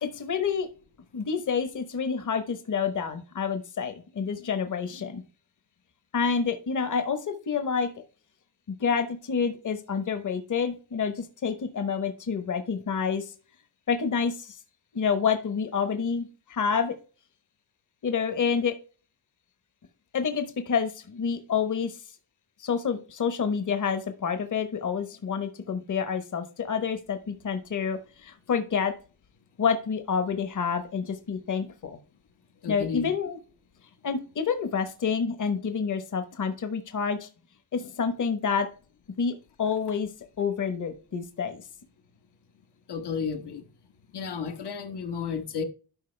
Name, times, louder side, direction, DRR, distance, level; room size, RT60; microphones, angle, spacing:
voice 1, 0.0-0.7 1.1-5.2 6.1-7.9 8.7-13.3 13.9-14.6 14.9-16.9 18.0-18.7 20.1-22.0 22.6-28.9 29.6-32.0 32.7-33.4 34.0-37.3 37.7-38.7 39.2-40.1 40.4-41.6, left 6 dB, 50° left, 1.1 m, -28 dB
voice 2, 32.6-33.1 42.9-43.7 44.1-45.6, left 6 dB, 75° left, 1.3 m, -32 dB
12.0 x 5.3 x 3.3 m
wide cardioid pair, 145°, 40 cm